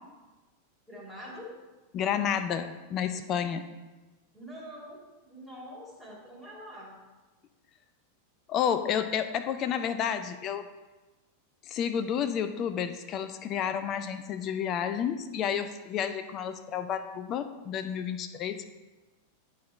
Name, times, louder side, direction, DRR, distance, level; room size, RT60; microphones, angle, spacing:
voice 1, 0.9-1.5 4.3-5.0 5.3-6.9, equal, 5° left, -5 dB, 2.4 m, -44 dB
voice 2, 1.9-3.7 8.5-10.7 11.7-18.6, left 8 dB, 35° left, 10 dB, 0.4 m, -30 dB
10.5 x 3.9 x 4.2 m, 1.2 s
figure-of-eight pair, 90°, 0 cm